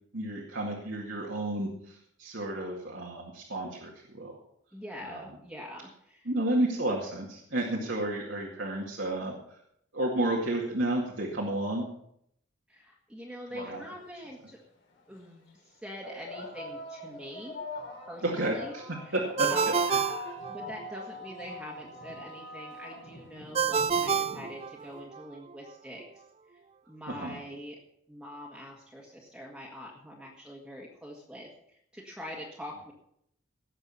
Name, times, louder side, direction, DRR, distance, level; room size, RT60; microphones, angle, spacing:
voice 1, 0.1-4.3 5.0-5.3 6.2-9.6 9.9-11.9 13.5-13.8 18.2-20.2 27.1-27.4, right 1 dB, 70° right, -2 dB, 2.2 m, -32 dB
voice 2, 4.7-6.3 12.7-14.6 15.1-17.6 18.1-18.7 19.1-19.2 19.5-20.1 20.5-26.0 26.9-27.8 28.1-31.5 31.9-32.9, equal, 5° right, -2 dB, 1.8 m, -44 dB
sound 1, 14.0-14.1 15.0-15.2 16.0-24.9, left 1 dB, 75° left, 5.4 m, -43 dB
Ringtone, 19.4-21.1 23.6-25.2, right 6 dB, 30° right, 0.4 m, -28 dB
18.0 x 7.1 x 5.7 m, 0.72 s
head